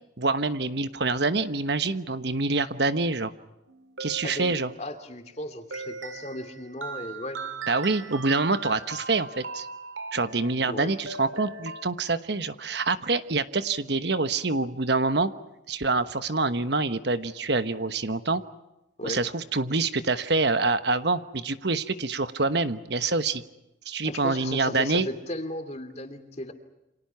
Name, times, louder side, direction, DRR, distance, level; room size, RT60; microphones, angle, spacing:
voice 1, 0.2-3.3 4.0-4.7 7.7-9.7 10.1-15.3 15.7-18.4 19.0-23.4 23.9-25.1, right 3 dB, 60° right, 11 dB, 1.2 m, -26 dB
sound 1, 3.7-5.0 5.7-11.9, right 3 dB, 85° right, 2.1 m, -39 dB
voice 2, 4.2-7.4 10.7-10.9 19.0-19.3 24.0-26.5, left 1 dB, 35° left, 8 dB, 2.7 m, -36 dB
29.5 x 27.0 x 5.8 m, 0.92 s
head